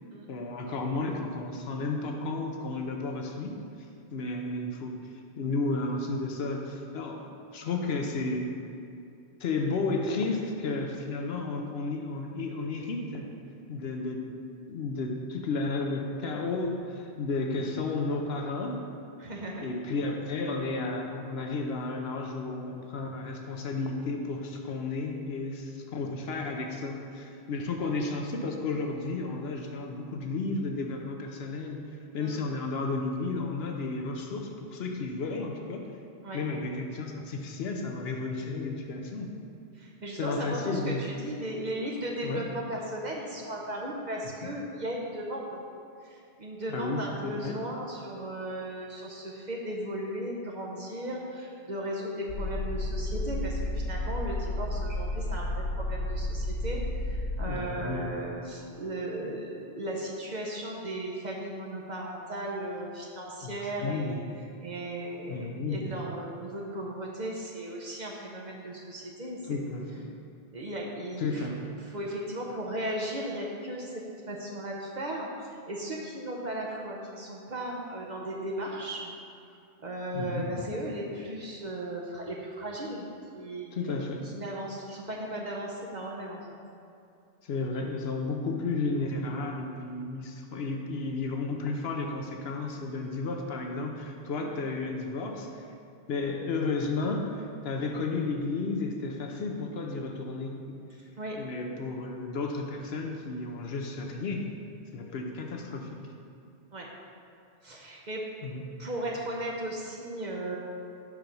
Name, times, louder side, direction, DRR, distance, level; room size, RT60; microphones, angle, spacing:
voice 1, 0.3-3.6 4.1-8.4 9.4-13.3 13.7-14.2 14.7-18.8 19.6-35.8 36.3-39.3 40.2-41.0 42.2-42.4 44.4-44.5 46.7-47.6 57.4-58.1 63.4-64.2 65.3-65.9 69.4-70.1 71.2-71.8 80.1-80.5 83.7-84.3 87.4-95.7 96.1-100.6 101.3-104.5 104.9-106.0 108.4-108.6, left 3 dB, 65° left, 2 dB, 0.8 m, -33 dB
voice 2, 19.2-19.7 32.2-32.4 36.2-36.5 39.7-45.6 46.0-64.2 64.6-69.6 70.5-71.5 71.8-79.1 79.8-83.1 83.3-83.7 84.3-86.5 94.4-94.5 101.2-101.4 106.7-106.9 107.6-108.2 108.8-110.6, right 1 dB, 45° right, -2 dB, 0.7 m, -36 dB
sound 1, 52.3-57.6, left 1 dB, 85° left, 1.6 m, -32 dB
5.7 x 4.7 x 5.2 m, 2.6 s
omnidirectional pair, 1.2 m